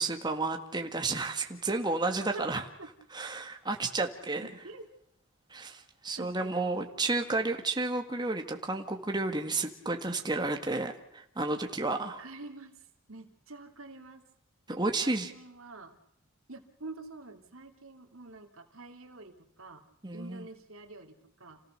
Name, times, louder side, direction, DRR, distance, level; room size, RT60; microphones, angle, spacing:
voice 1, 0.0-2.6 3.1-4.5 5.5-12.2 14.8-15.3 20.0-20.4, right 3 dB, 20° right, 4 dB, 1.8 m, -31 dB
voice 2, 4.4-4.8 6.2-7.1 12.0-12.8 13.1-14.2 14.7-16.0 16.5-19.8 20.1-21.6, right 2 dB, 85° right, 5 dB, 2.9 m, -47 dB
28.5 x 17.0 x 6.7 m, 0.79 s
head